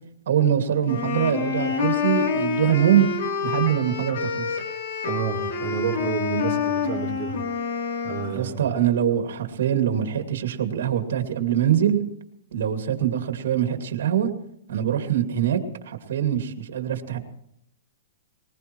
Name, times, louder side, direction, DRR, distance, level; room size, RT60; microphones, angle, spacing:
voice 1, 0.3-3.1 3.4-4.6 8.3-12.0 12.5-14.3 14.7-17.2, right 10 dB, 70° right, 6 dB, 2.2 m, -23 dB
sound 1, 0.8-8.3, left 6 dB, 65° left, 3.1 m, -27 dB
voice 2, 5.0-7.4 8.0-8.6, right 6 dB, 35° right, -10 dB, 4.0 m, -29 dB
20.5 x 20.0 x 3.1 m, 0.76 s
hypercardioid pair, 145°, 0 cm